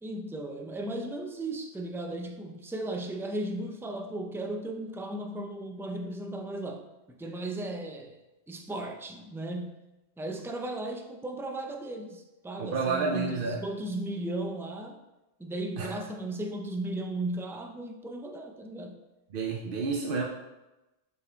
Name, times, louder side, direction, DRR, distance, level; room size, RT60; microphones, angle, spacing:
voice 1, 0.0-8.2 8.5-9.7 10.2-15.0 15.4-19.0, right 1 dB, 5° right, 3 dB, 0.3 m, -36 dB
voice 2, 12.6-13.6 15.8-15.9 19.3-20.2, right 4 dB, 55° right, 0 dB, 0.8 m, -29 dB
7.3 x 4.2 x 4.5 m, 1.0 s
omnidirectional pair, 1.1 m